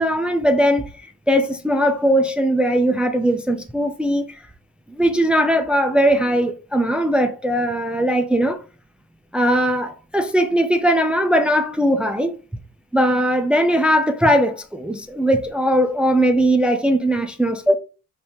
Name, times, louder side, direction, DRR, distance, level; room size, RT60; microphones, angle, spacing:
voice 1, 0.0-4.3 4.9-8.6 9.3-12.3 12.9-17.8, equal, 5° right, 0.4 m, -19 dB
3.8 x 3.1 x 2.6 m
cardioid pair, 90°, 30 cm